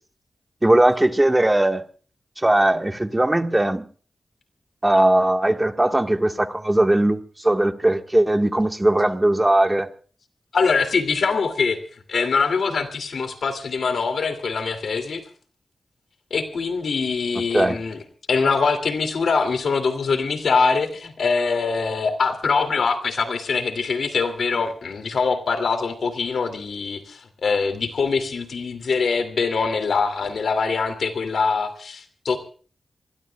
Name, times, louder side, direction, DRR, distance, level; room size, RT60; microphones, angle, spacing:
voice 1, 0.6-1.8 2.4-3.9 4.8-9.9 17.5-17.8, right 1 dB, 20° right, 1.5 m, -19 dB
voice 2, 10.5-11.8 12.1-15.2 16.3-18.0 18.3-32.4, left 4 dB, 80° left, 2.6 m, -23 dB
26.5 x 20.5 x 2.3 m
cardioid pair, 55°, 0 cm